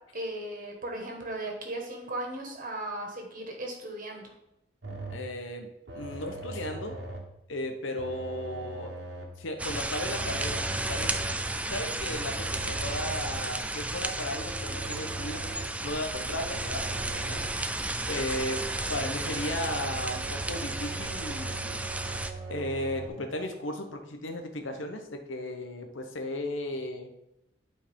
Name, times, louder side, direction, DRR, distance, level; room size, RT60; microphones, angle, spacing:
voice 1, 0.1-4.3, right 1 dB, 45° right, 1 dB, 1.6 m, -37 dB
sound 1, 4.8-5.4 5.9-7.4 8.0-9.4 10.1-11.5 12.2-13.6 14.3-15.8 16.3-17.7 18.4-23.1, right 2 dB, 60° right, 1.4 m, -40 dB
voice 2, 5.1-5.7 5.9-7.0 7.5-8.9 9.4-11.2 11.7-15.5 15.8-17.5 18.1-18.6 18.9-21.8 22.5-27.1, left 1 dB, 85° left, 5 dB, 1.1 m, -35 dB
sound 2, 9.6-22.3, right 2 dB, 5° right, 0.3 m, -33 dB
11.0 x 4.6 x 3.7 m, 0.86 s
head